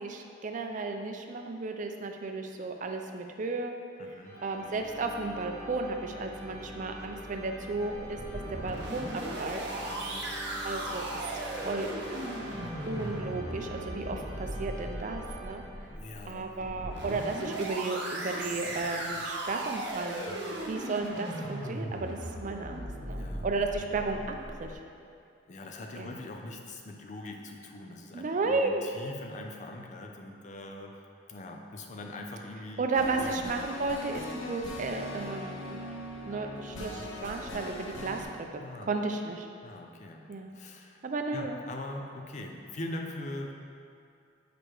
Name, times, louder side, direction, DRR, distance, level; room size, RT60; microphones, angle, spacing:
voice 1, 0.0-3.8 4.4-8.2 8.5-9.1 9.4-9.6 10.6-11.0 11.5-11.9 12.9-15.6 16.3-20.2 20.7-24.2 24.6-24.7 26.0-26.2 28.1-28.8 32.8-35.8 36.3-39.5 40.3-40.5 41.0-41.6, right 3 dB, 45° right, 4 dB, 0.4 m, -33 dB
voice 2, 4.0-4.4 7.8-8.0 8.4-8.7 9.9-10.3 15.9-16.5 18.5-18.8 20.2-20.7 23.1-23.5 25.5-31.0 31.3-32.9 33.1-33.5 38.6-38.9 39.6-40.3 40.5-41.0 41.3-43.5, left 1 dB, 40° left, 2 dB, 0.5 m, -42 dB
sound 1, 4.2-16.2, equal, 15° left, 1.2 m, -45 dB
sound 2, 7.9-24.7, right 1 dB, 60° right, 0.8 m, -37 dB
sound 3, 32.9-38.2, left 1 dB, 85° left, 0.6 m, -40 dB
6.4 x 5.0 x 3.1 m, 2.4 s
head